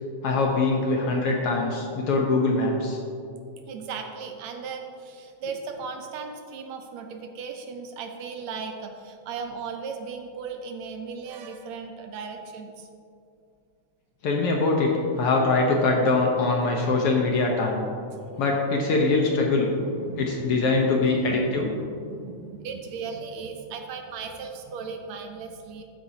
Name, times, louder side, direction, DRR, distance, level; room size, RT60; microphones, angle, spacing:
voice 1, 0.2-3.0 14.2-14.9 15.2-17.8 18.4-19.7 20.2-21.7, left 3 dB, 65° left, 0 dB, 1.6 m, -23 dB
voice 2, 3.7-12.9 16.9-17.0 18.1-18.4 18.7-19.2 19.5-25.8, right 5 dB, 75° right, 5 dB, 1.8 m, -37 dB
13.5 x 8.7 x 2.8 m, 2.4 s
omnidirectional pair, 3.3 m